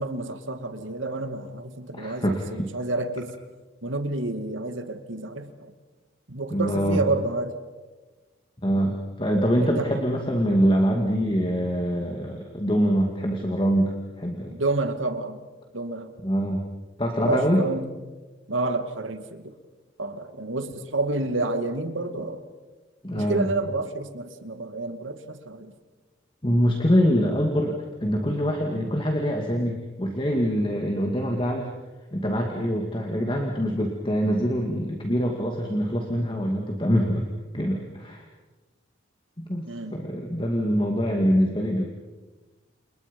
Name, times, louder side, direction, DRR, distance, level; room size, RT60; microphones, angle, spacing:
voice 1, 0.0-3.3 3.8-5.7 6.3-7.5 9.6-10.0 14.5-15.4 15.7-16.1 17.2-17.9 18.5-19.5 20.0-22.4 23.2-25.7 39.7-40.0, right 2 dB, 85° right, 8 dB, 2.3 m, -29 dB
voice 2, 2.0-2.7 6.5-7.0 8.6-14.5 16.2-16.6 17.0-17.6 23.0-23.5 26.4-31.7 32.1-37.3 37.5-38.2 39.4-41.9, equal, 25° left, 1 dB, 2.4 m, -24 dB
30.0 x 29.5 x 5.4 m, 1.3 s
head